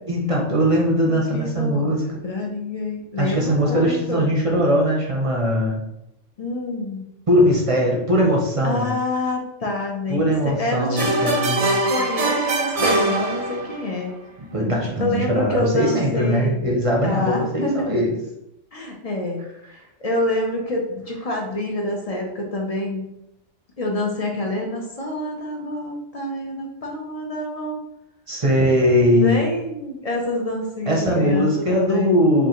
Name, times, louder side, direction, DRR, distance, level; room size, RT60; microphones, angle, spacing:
voice 1, 0.1-2.0 3.2-5.8 7.3-8.9 10.1-11.7 14.5-18.1 28.3-29.4 30.9-32.5, equal, 35° right, -2 dB, 0.7 m, -20 dB
voice 2, 1.1-4.3 6.4-7.1 8.6-11.5 11.9-14.1 15.0-16.7 17.0-17.8 18.7-19.4 19.7-23.1 23.8-27.8 29.2-32.2, left 1 dB, 35° left, 0 dB, 0.7 m, -27 dB
sound 1, 11.0-13.9, right 2 dB, 70° right, 0.3 m, -22 dB
5.2 x 2.5 x 3.0 m, 0.85 s
omnidirectional pair, 1.3 m